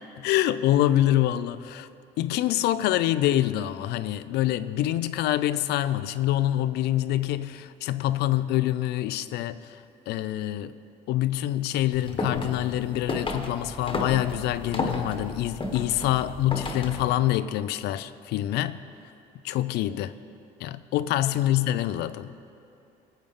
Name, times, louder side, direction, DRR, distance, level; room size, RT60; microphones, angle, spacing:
voice 1, 0.2-1.9 2.2-9.8 10.1-10.7 11.1-18.8 19.4-20.1 20.6-22.3, left 13 dB, 80° left, 0.5 m, -26 dB
sound 1, 11.9-17.1, left 2 dB, 30° left, 1.3 m, -33 dB
19.5 x 8.3 x 3.7 m
cardioid pair, 110°, 17 cm